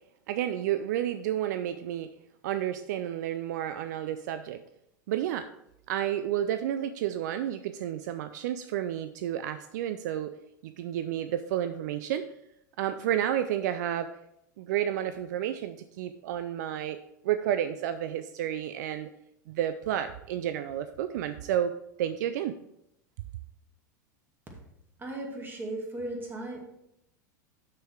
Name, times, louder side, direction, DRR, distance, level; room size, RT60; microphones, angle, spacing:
voice 1, 0.3-2.1 2.4-4.6 5.1-5.5 5.9-10.3 10.6-12.3 12.8-14.2 14.6-19.1 19.5-22.5, right 11 dB, 65° right, 10 dB, 0.5 m, -31 dB
voice 2, 25.0-26.6, right 1 dB, 20° right, 0 dB, 2.4 m, -37 dB
6.9 x 6.4 x 4.6 m, 0.80 s
hypercardioid pair, 95°, 10 cm